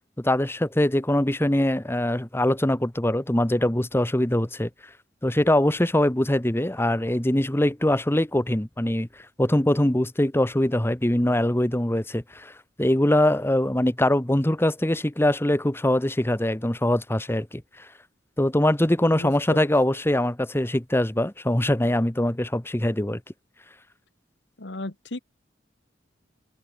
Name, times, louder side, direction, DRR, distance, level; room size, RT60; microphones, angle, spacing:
voice 1, 0.2-4.7 5.2-9.1 9.4-12.5 12.8-17.6 18.4-23.2, left 1 dB, 15° left, 1.1 m, -22 dB
voice 2, 19.1-19.7 24.6-25.2, left 2 dB, 70° left, 1.7 m, -35 dB
open air
head